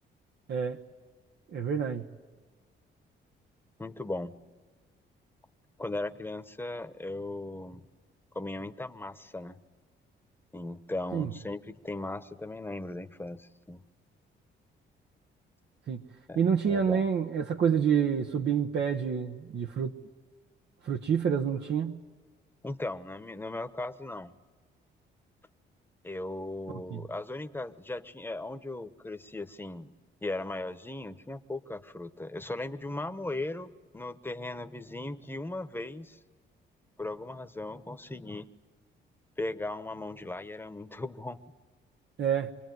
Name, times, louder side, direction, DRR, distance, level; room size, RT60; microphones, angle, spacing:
voice 1, 0.5-0.8 1.5-2.0 11.1-11.3 15.9-16.0 16.4-19.9 20.8-22.0 26.9-27.0 42.2-42.5, right 7 dB, 60° right, 1.1 m, -28 dB
voice 2, 3.8-4.3 5.8-7.9 8.3-9.6 10.5-13.8 16.3-16.4 16.6-17.0 22.6-24.3 26.0-29.9 30.2-36.2 37.0-38.5 39.4-41.4, left 2 dB, 10° left, 1.2 m, -37 dB
26.5 x 21.0 x 9.5 m
cardioid pair, 90°, 20 cm